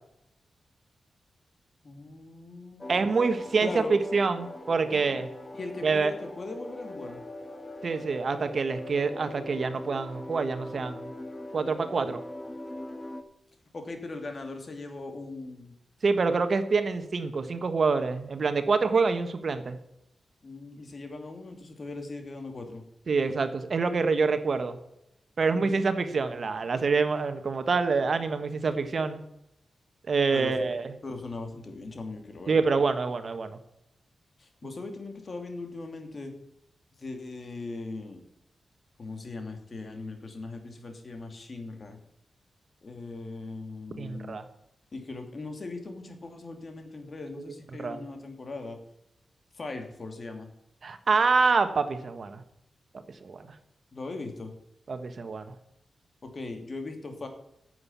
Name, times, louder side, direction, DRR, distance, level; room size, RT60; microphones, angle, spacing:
voice 1, 1.8-3.1 3.6-4.0 4.9-5.2 5.5-7.2 13.7-15.7 20.4-22.8 25.5-25.8 30.3-30.7 31.0-32.7 34.4-36.3 37.0-38.2 39.0-42.0 42.8-44.4 44.9-48.8 49.5-50.5 53.9-54.5 56.2-57.3, left 3 dB, 50° left, 5 dB, 2.7 m, -39 dB
sound 1, 2.8-13.2, left 1 dB, 20° left, 1.6 m, -41 dB
voice 2, 2.9-5.3 5.8-6.1 7.8-11.1 11.5-12.2 16.0-19.8 23.1-24.8 25.4-29.2 30.1-30.9 32.5-33.6 44.0-44.4 47.8-48.0 50.8-52.4 53.2-53.4 54.9-55.5, right 4 dB, 60° right, 9 dB, 1.3 m, -26 dB
9.6 x 7.8 x 8.6 m, 0.83 s
cardioid pair, 55°, 0 cm